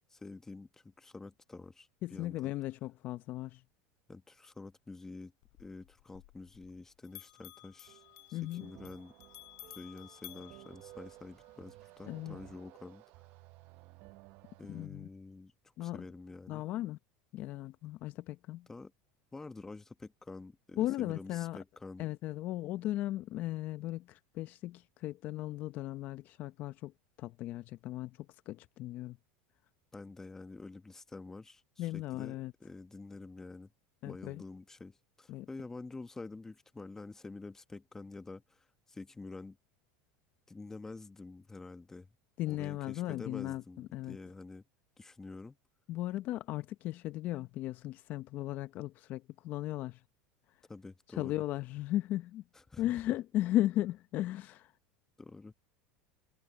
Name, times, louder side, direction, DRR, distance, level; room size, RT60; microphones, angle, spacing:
voice 1, 0.1-2.5 4.1-5.3 5.6-8.0 8.3-9.1 9.7-13.0 14.6-15.5 15.8-16.7 18.7-18.9 19.3-22.1 29.9-32.3 32.6-33.7 34.0-39.6 40.5-42.1 42.5-44.6 45.0-45.6 50.7-51.4 52.5-52.9 55.2-55.5, left 3 dB, 10° left, 1.5 m, -48 dB
voice 2, 2.0-3.6 8.3-8.7 12.1-12.4 14.7-15.1 15.8-16.0 16.5-17.0 17.3-18.7 20.8-21.6 22.0-26.9 27.2-28.2 28.5-29.2 31.8-32.5 34.0-34.4 35.3-35.5 42.4-44.2 45.9-50.0 51.2-52.4 52.8-54.7, left 15 dB, 50° left, 0.7 m, -36 dB
Bell, 5.4-6.8 7.0-11.5, left 28 dB, 70° left, 4.3 m, -54 dB
sound 1, 7.9-14.9, right 19 dB, 55° right, 0.9 m, -56 dB
supercardioid pair, 120°, 4 cm